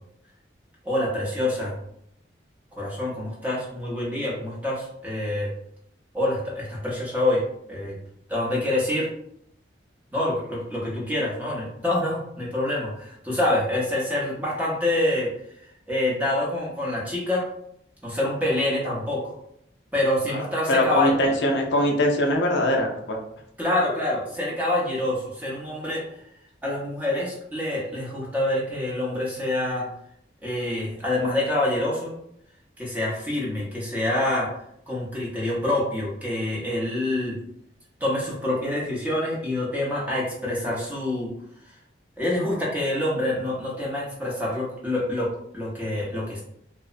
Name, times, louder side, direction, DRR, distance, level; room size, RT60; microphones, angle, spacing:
voice 1, 0.8-1.7 2.7-5.5 6.1-7.4 7.7-7.9 8.3-9.1 10.1-15.3 15.9-17.4 18.0-19.3 19.9-21.1 23.6-26.0 26.6-29.9 30.4-32.2 32.8-34.5 34.9-37.4 38.0-41.3 42.2-45.3 45.5-46.4, left 1 dB, 10° right, -5 dB, 0.6 m, -26 dB
voice 2, 20.3-23.2, left 1 dB, 65° left, 1 dB, 0.4 m, -22 dB
2.8 x 2.0 x 2.4 m, 0.74 s
head